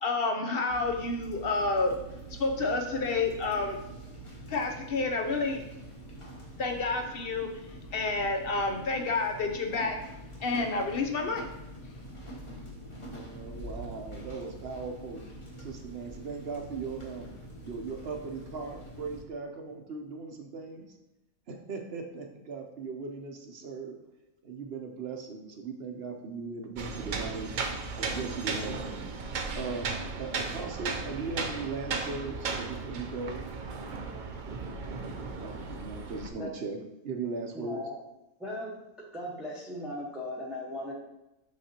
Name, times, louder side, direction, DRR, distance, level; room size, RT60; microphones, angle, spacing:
voice 1, 0.0-2.0 2.4-3.8 4.5-5.6 6.6-7.5 7.9-10.0 10.4-11.4, left 3 dB, 55° left, 4 dB, 0.7 m, -29 dB
sound 1, 0.7-19.2, right 1 dB, 25° left, 0.9 m, -45 dB
voice 2, 13.1-15.2 15.6-17.3 17.6-21.0 21.5-24.0 24.4-27.5 28.0-29.1 29.5-34.2 35.4-37.8, right 4 dB, 50° right, 3 dB, 0.9 m, -38 dB
sound 2, 26.8-36.3, right 4 dB, 70° right, 0.4 m, -35 dB
voice 3, 37.5-38.0 38.4-38.7 39.1-40.9, left 1 dB, ahead, -4 dB, 0.9 m, -37 dB
6.4 x 5.8 x 2.8 m, 0.92 s
omnidirectional pair, 1.6 m